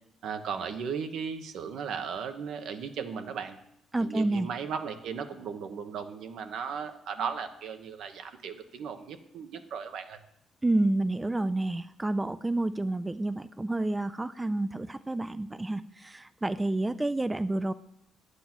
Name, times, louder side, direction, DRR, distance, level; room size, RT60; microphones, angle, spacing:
voice 1, 0.2-3.6 4.0-10.2, right 6 dB, 75° right, 7 dB, 1.1 m, -36 dB
voice 2, 3.9-4.5 10.6-17.7, right 2 dB, 15° right, 14 dB, 0.4 m, -29 dB
10.5 x 8.1 x 6.1 m, 0.78 s
cardioid pair, 90°, 0 cm